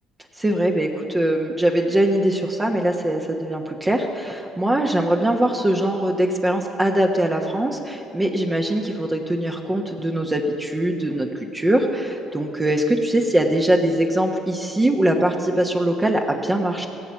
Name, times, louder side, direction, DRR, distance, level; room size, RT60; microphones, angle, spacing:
voice 1, 0.4-16.9, right 1 dB, 20° right, 2 dB, 1.1 m, -22 dB
17.0 x 7.3 x 7.1 m, 2.9 s
hypercardioid pair, 65°, 0 cm